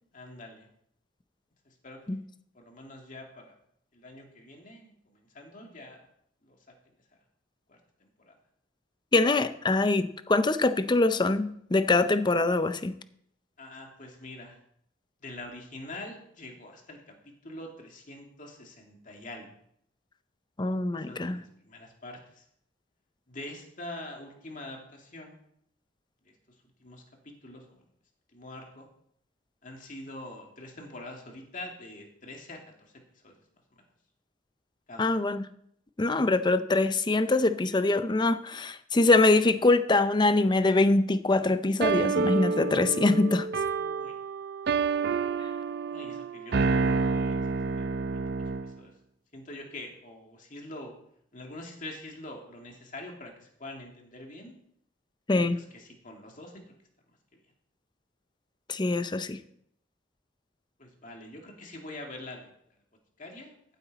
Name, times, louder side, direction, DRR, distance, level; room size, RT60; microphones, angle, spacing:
voice 1, 0.1-0.7 1.6-2.2 2.5-3.5 3.9-6.1 6.4-6.6 6.9-7.0 7.7-8.4 13.6-14.6 15.2-19.5 20.9-22.5 23.3-25.4 26.2-26.3 26.8-27.9 28.3-28.9 29.6-33.3 33.8-33.9 34.9-35.1 43.7-44.2 45.9-47.9 48.1-48.9 49.3-50.9 51.3-54.6 55.3-56.7 60.8-62.8 63.2-63.6, left 1 dB, 40° left, 2.3 m, -45 dB
voice 2, 9.1-12.9 20.6-21.4 35.0-35.5 36.0-43.5 55.3-55.6 58.7-59.4, left 2 dB, 25° left, 0.5 m, -24 dB
sound 1, 41.8-48.8, right 4 dB, 55° right, 0.5 m, -28 dB
14.5 x 8.3 x 4.1 m
head